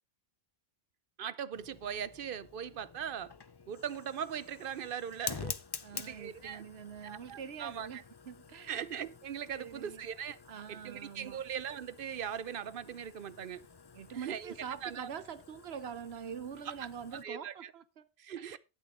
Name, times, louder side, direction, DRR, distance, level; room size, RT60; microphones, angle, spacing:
voice 1, 1.2-3.3 3.7-5.6 5.9-6.6 7.0-8.0 8.7-10.4 10.7-13.6 14.1-14.5 14.8-15.1 16.6-16.7 17.1-17.7 18.2-18.6, right 8 dB, 60° right, 0.8 m, -40 dB
Fire, 1.5-17.2, left 5 dB, 30° left, 0.5 m, -48 dB
voice 2, 5.8-8.8 9.5-10.1 10.5-11.4 13.9-18.1 18.4-18.6, right 7 dB, 85° right, 1.1 m, -45 dB
12.0 x 8.4 x 3.7 m
omnidirectional pair, 1.0 m